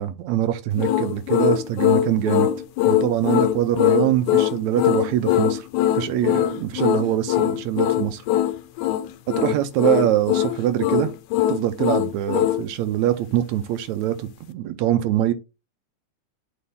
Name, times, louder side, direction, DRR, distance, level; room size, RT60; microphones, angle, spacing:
voice 1, 0.0-2.5 2.9-5.7 6.0-8.2 9.4-11.1 11.5-15.3, right 12 dB, 80° right, 1.9 m, -23 dB
sound 1, 0.8-12.6, left 13 dB, 85° left, 2.0 m, -21 dB
8.6 x 4.0 x 3.6 m
omnidirectional pair, 3.5 m